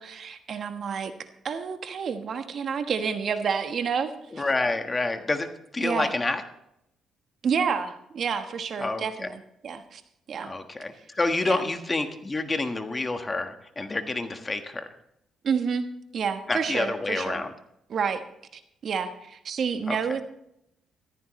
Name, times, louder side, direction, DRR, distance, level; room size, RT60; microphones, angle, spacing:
voice 1, 0.0-4.4 5.8-6.1 7.4-10.0 10.3-10.5 11.5-11.6 15.4-15.9 16.1-17.4 17.9-18.2 18.5-20.2, right 6 dB, 55° right, 8 dB, 1.2 m, -29 dB
voice 2, 4.3-5.5 5.7-6.4 8.8-9.3 10.4-14.9 16.5-17.5 19.9-20.0, left 2 dB, 25° left, 7 dB, 1.4 m, -28 dB
15.0 x 14.0 x 3.2 m, 0.79 s
cardioid pair, 90°, 0 cm